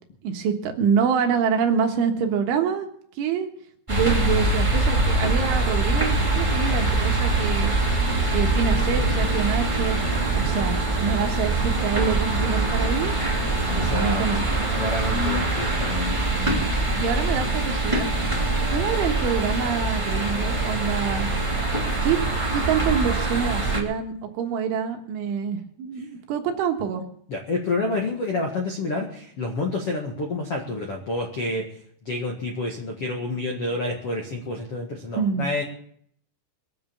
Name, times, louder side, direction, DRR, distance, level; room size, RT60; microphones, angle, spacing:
voice 1, 0.2-2.9 3.2-3.5 3.9-7.8 8.3-10.0 10.3-13.2 13.8-14.4 16.4-16.5 17.0-18.1 18.7-21.3 22.0-22.2 22.5-27.0 35.2-35.5, right 7 dB, 75° right, 4 dB, 3.7 m, -26 dB
sound 1, 3.9-23.8, right 2 dB, 20° right, 0.8 m, -23 dB
voice 2, 10.1-10.5 13.7-14.2 14.8-16.2 27.3-31.7 32.0-35.6, left 2 dB, 75° left, 1 dB, 1.3 m, -29 dB
22.5 x 7.8 x 7.1 m, 0.65 s
omnidirectional pair, 6.0 m